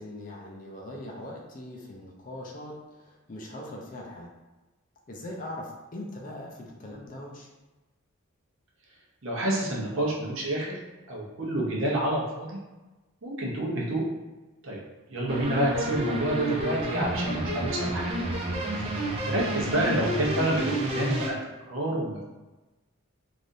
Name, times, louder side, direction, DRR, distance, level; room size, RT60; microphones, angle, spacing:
voice 1, 0.0-4.3 5.1-7.5 18.8-18.9, left 1 dB, 35° left, -1 dB, 0.4 m, -41 dB
voice 2, 9.2-10.7 11.1-12.6 13.2-14.0 14.6-14.8 15.1-18.1 19.2-21.4 21.7-22.2, right 1 dB, 65° right, -3 dB, 0.8 m, -28 dB
sound 1, 15.3-21.3, right 1 dB, 25° right, 0.4 m, -30 dB
3.3 x 2.5 x 2.6 m, 1.1 s
head